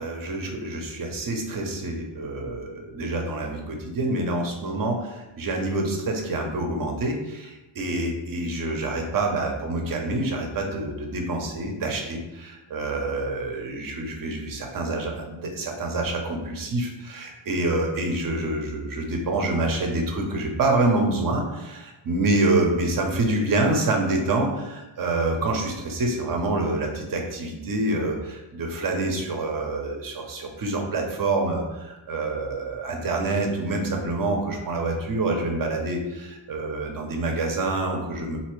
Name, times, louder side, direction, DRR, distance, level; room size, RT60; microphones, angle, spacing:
voice 1, 0.0-38.4, right 2 dB, 40° right, 2 dB, 0.8 m, -27 dB
3.2 x 2.7 x 3.1 m, 1.0 s
cardioid pair, 95°, 50 cm